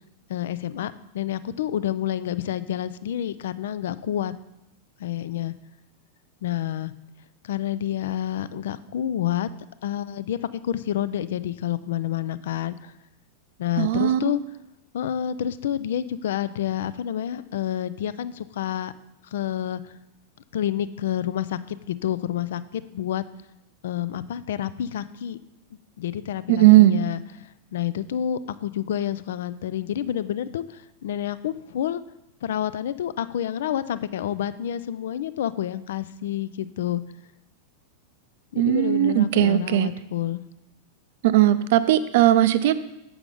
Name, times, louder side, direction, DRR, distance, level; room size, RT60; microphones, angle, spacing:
voice 1, 0.3-4.3 5.0-5.5 6.4-6.9 7.4-9.5 9.8-12.9 13.6-14.4 14.9-18.9 19.3-19.9 20.5-23.2 23.8-25.4 26.0-32.0 32.4-37.0 38.5-40.4, left 11 dB, 60° left, 15 dB, 0.4 m, -29 dB
voice 2, 13.8-14.3 26.5-27.0 38.6-39.9 41.2-42.7, right 14 dB, 55° right, 13 dB, 0.5 m, -18 dB
7.9 x 6.0 x 5.1 m, 0.90 s
figure-of-eight pair, 90°, 0 cm